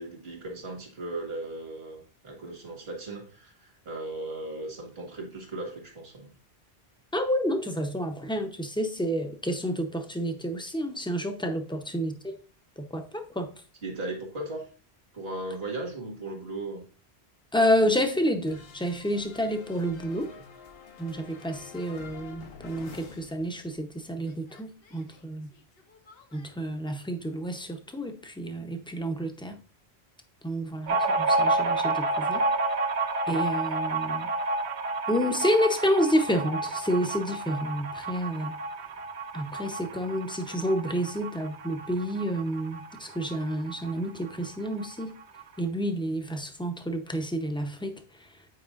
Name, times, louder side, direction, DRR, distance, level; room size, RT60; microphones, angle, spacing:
voice 1, 0.0-6.3 13.8-14.7 15.1-16.8 20.3-20.5, right 2 dB, 70° right, 2.0 m, -37 dB
voice 2, 7.1-12.2 12.8-13.5 17.5-20.3 21.0-25.5 26.3-29.6 30.4-32.5 33.3-34.3 35.1-38.6 39.3-45.1 45.6-48.0, equal, 5° left, 0.6 m, -29 dB
sound 1, 18.5-23.9 24.2-26.5, left 5 dB, 65° left, 1.1 m, -49 dB
sound 2, 30.9-44.0 44.3-44.4 44.7-45.4, right 2 dB, 90° right, 0.9 m, -30 dB
8.6 x 4.8 x 2.4 m
omnidirectional pair, 1.1 m